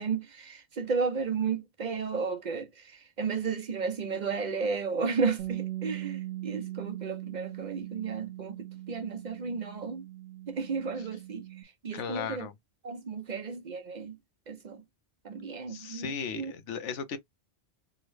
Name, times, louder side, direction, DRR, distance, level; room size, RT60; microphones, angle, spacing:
voice 1, 0.0-10.1 10.5-12.5 12.8-14.2 14.5-14.8 15.2-16.5, right 5 dB, 50° right, 0.6 m, -33 dB
Bass guitar, 5.4-11.6, right 15 dB, 75° right, 1.0 m, -40 dB
voice 2, 11.9-12.5 15.7-17.2, left 6 dB, 90° left, 1.0 m, -36 dB
3.6 x 2.1 x 3.2 m
omnidirectional pair, 1.2 m